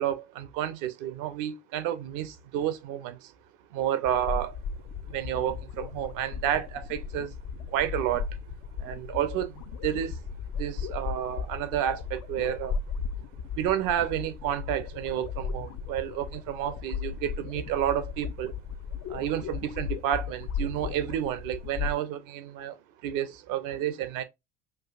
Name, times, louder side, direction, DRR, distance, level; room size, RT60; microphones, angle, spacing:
voice 1, 0.0-3.3 3.7-4.6 5.0-7.4 7.7-8.3 8.8-10.2 10.5-12.8 13.5-18.5 19.1-24.2, right 11 dB, 60° right, 0.8 m, -30 dB
sound 1, 4.0-21.9, left 6 dB, 55° left, 0.5 m, -36 dB
6.3 x 2.5 x 2.4 m
hypercardioid pair, 70°, 35 cm